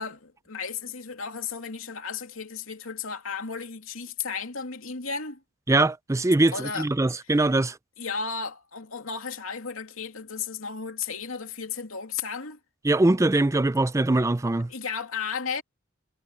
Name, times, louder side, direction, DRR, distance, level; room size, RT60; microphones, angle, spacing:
voice 1, 0.0-5.4 6.5-6.9 8.0-12.6 14.7-15.6, left 5 dB, 75° left, 2.8 m, -34 dB
voice 2, 5.7-7.8 12.8-14.7, right 2 dB, 15° right, 0.4 m, -22 dB
head